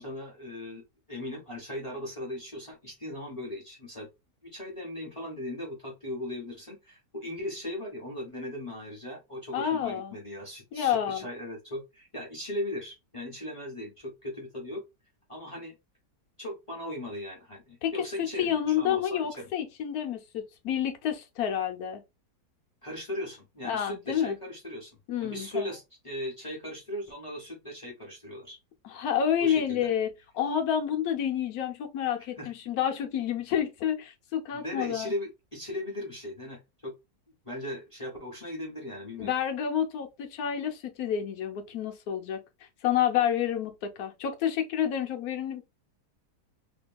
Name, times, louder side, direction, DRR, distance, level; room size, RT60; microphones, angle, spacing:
voice 1, 0.0-4.1 4.4-14.8 15.3-15.7 16.4-19.5 22.8-28.6 29.4-29.9 32.4-32.5 34.5-36.9 37.4-39.3, left 1 dB, 30° left, 0.6 m, -38 dB
voice 2, 9.5-10.1 10.7-11.3 17.8-17.9 18.2-22.0 23.6-24.4 25.1-25.7 28.8-35.1 39.2-42.4 42.8-45.7, left 9 dB, 70° left, 1.1 m, -29 dB
2.8 x 2.7 x 2.2 m
omnidirectional pair, 1.8 m